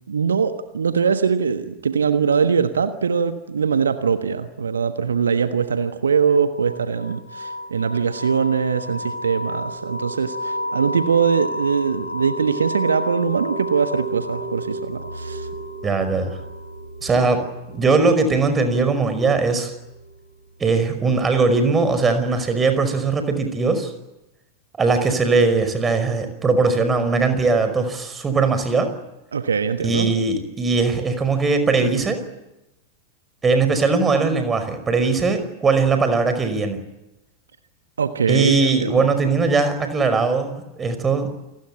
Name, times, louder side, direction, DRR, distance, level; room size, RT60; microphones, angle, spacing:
voice 1, 0.1-15.5 29.3-30.1 31.8-31.9 38.0-39.1, right 6 dB, 70° right, 10 dB, 1.3 m, -22 dB
sound 1, 6.1-20.6, equal, 85° left, 5.4 m, -32 dB
voice 2, 15.8-16.4 17.0-19.7 20.6-23.9 24.8-28.9 29.8-32.2 33.4-36.8 38.3-41.3, right 4 dB, 20° right, 9 dB, 5.3 m, -20 dB
29.0 x 19.5 x 8.7 m, 0.95 s
figure-of-eight pair, 90°, 0 cm